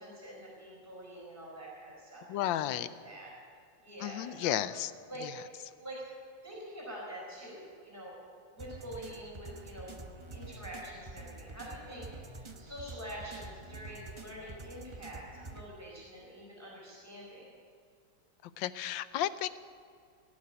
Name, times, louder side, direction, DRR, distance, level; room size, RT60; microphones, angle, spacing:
voice 1, 0.0-3.3 3.8-4.6 5.1-5.3 5.8-6.0 6.4-8.1 8.5-10.0 10.3-15.2 15.5-17.4, right 1 dB, 10° left, -5 dB, 4.5 m, -46 dB
voice 2, 2.3-2.9 4.0-4.9 5.2-5.3 18.6-19.5, left 12 dB, 80° left, 15 dB, 1.3 m, -33 dB
sound 1, 8.6-15.6, right 2 dB, 30° right, 0.5 m, -47 dB
18.5 x 7.6 x 10.0 m, 2.2 s
omnidirectional pair, 2.1 m